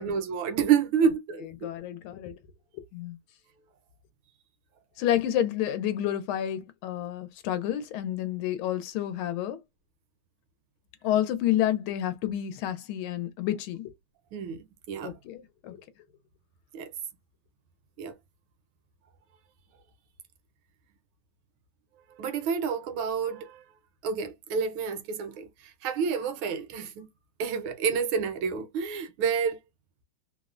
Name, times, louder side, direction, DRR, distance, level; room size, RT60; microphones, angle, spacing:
voice 1, 0.0-1.5 14.3-15.2 16.7-16.9 18.0-18.1 22.2-23.6 24.0-27.1 27.4-29.6, right 6 dB, 85° right, 1.5 m, -29 dB
voice 2, 1.6-2.3 2.7-3.2 5.0-9.6 11.0-13.9 15.0-15.8, left 11 dB, 85° left, 1.4 m, -29 dB
3.6 x 2.0 x 2.3 m
omnidirectional pair, 2.2 m